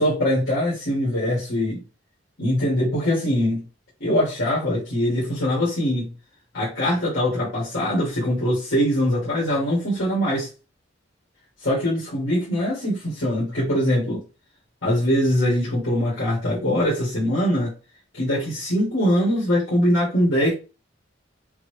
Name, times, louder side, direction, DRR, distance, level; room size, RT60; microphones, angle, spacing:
voice 1, 0.0-1.8 2.4-3.6 4.0-6.1 6.5-10.5 11.6-14.2 14.8-17.7 18.1-20.5, equal, 80° left, 2.0 m, -22 dB
5.8 x 2.2 x 3.1 m
head